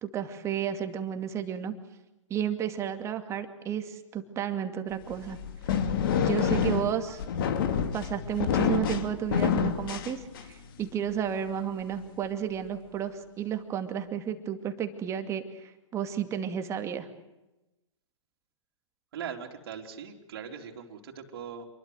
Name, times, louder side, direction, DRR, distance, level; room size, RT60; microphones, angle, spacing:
voice 1, 0.0-1.7 2.3-5.4 5.7-5.8 6.2-7.2 7.9-17.1, right 9 dB, 20° right, 7 dB, 2.4 m, -32 dB
sound 1, 5.1-10.7, left 7 dB, 45° left, 2.6 m, -28 dB
voice 2, 19.1-21.7, right 7 dB, 50° right, 2 dB, 3.8 m, -40 dB
28.0 x 22.0 x 8.1 m, 0.97 s
figure-of-eight pair, 125°, 16 cm